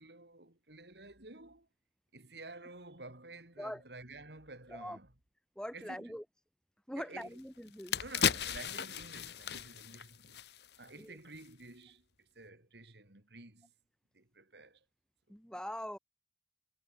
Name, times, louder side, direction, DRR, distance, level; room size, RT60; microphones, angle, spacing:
voice 1, 0.0-1.7 2.1-5.1 5.7-6.2 6.9-7.4 8.0-10.4 10.8-13.7 14.1-14.9 15.3-15.4, right 2 dB, 65° right, 4.1 m, -51 dB
voice 2, 5.6-6.2 6.9-8.0 11.0-11.2 15.3-16.0, equal, 5° left, 3.9 m, -42 dB
sound 1, 7.2-7.3 7.7-11.0 11.3-11.5, left 8 dB, 65° left, 1.2 m, -35 dB
head